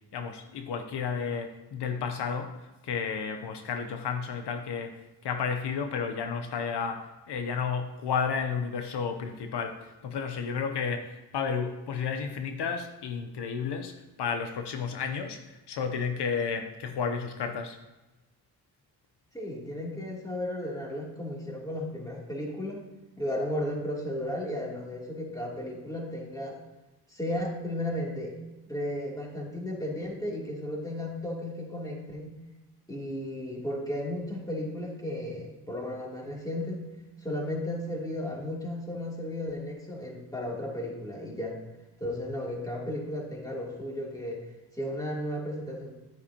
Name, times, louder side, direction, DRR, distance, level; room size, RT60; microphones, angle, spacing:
voice 1, 0.1-2.5 2.8-17.8, left 6 dB, 85° left, 6 dB, 0.8 m, -32 dB
voice 2, 19.3-22.8 23.2-26.6 27.1-28.3 28.7-32.4 32.9-36.8 37.2-41.6 42.0-44.4 44.8-45.9, left 1 dB, 10° left, -3 dB, 2.9 m, -34 dB
9.7 x 9.5 x 2.9 m, 1.1 s
cardioid pair, 75°, 40 cm